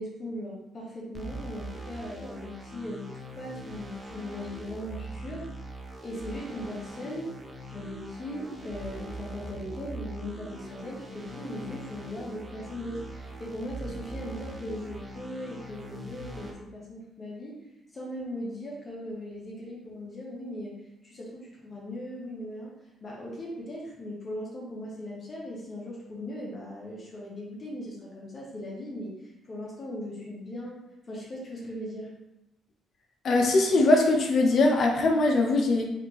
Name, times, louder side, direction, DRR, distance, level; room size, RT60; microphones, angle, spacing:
voice 1, 0.0-5.5 6.0-7.3 7.7-17.6 17.9-22.7 23.0-32.1, left 1 dB, 40° left, -4 dB, 0.9 m, -39 dB
sound 1, 1.1-16.5, right 1 dB, 25° right, 0.6 m, -41 dB
voice 2, 33.2-35.8, left 2 dB, 60° left, 2 dB, 0.6 m, -21 dB
3.2 x 2.5 x 3.0 m, 0.93 s
cardioid pair, 90°, 0 cm